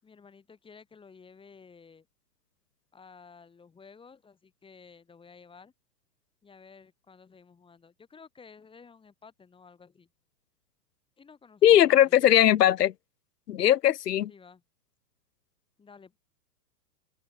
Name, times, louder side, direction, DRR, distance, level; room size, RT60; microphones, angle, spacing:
voice 1, 0.0-2.1 2.9-5.7 6.4-10.1 11.2-12.4 14.3-14.6 15.8-16.2, left 5 dB, 10° left, 6.5 m, -53 dB
voice 2, 11.6-12.9 13.5-14.3, left 11 dB, 80° left, 1.4 m, -20 dB
open air
hypercardioid pair, 145°, 47 cm